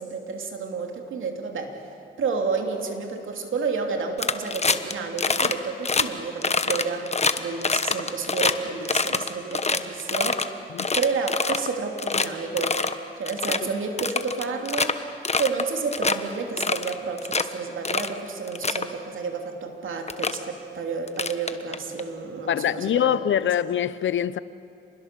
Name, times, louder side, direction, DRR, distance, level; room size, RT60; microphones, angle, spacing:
voice 1, 0.0-1.8 2.2-7.0 7.4-10.4 10.9-12.8 13.2-15.0 15.4-23.2, right 5 dB, 75° right, 2.9 m, -30 dB
sound 1, 4.2-4.9 5.2-5.5 5.8-6.0 6.4-8.5 8.8-10.4 10.8-11.7 12.0-12.3 12.6-12.9 13.2-13.6 14.0-14.9 15.2-15.6 15.9-16.2 16.6-17.4 17.8-18.1 18.5-18.8 19.7-19.8 20.1-20.4 21.1-22.0, left 4 dB, 30° left, 1.2 m, -25 dB
voice 2, 22.5-24.4, left 10 dB, 70° left, 0.7 m, -24 dB
28.0 x 20.5 x 6.9 m
cardioid pair, 65°, 20 cm